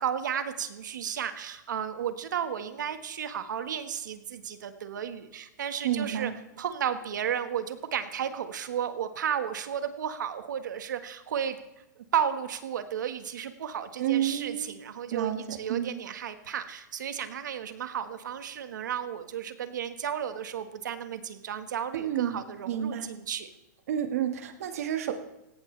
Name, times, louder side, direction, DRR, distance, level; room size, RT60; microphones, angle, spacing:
voice 1, 0.0-6.3 6.6-11.6 12.1-23.5, right 8 dB, 75° right, 9 dB, 1.6 m, -33 dB
voice 2, 5.8-6.3 14.0-14.7 15.1-16.0 21.9-22.4 22.7-23.1 23.9-25.1, right 10 dB, 50° right, 7 dB, 1.8 m, -30 dB
19.0 x 17.0 x 3.4 m, 0.92 s
supercardioid pair, 180°, 10 cm